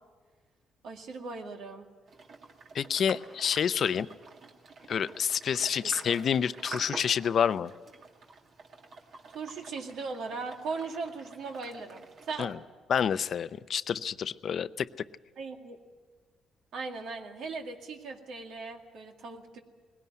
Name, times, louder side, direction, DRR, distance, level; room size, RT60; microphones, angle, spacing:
voice 1, 0.8-1.9 5.8-5.9 9.3-12.5 15.4-15.8 16.7-19.6, right 4 dB, 75° right, 3 dB, 2.1 m, -38 dB
sound 1, 2.1-12.5, right 3 dB, 55° right, 2.2 m, -47 dB
voice 2, 2.7-4.1 4.9-7.7 12.4-12.6 12.9-14.9, left 7 dB, 60° left, 15 dB, 0.6 m, -28 dB
20.0 x 17.0 x 9.4 m, 1.4 s
cardioid pair, 90°, 0 cm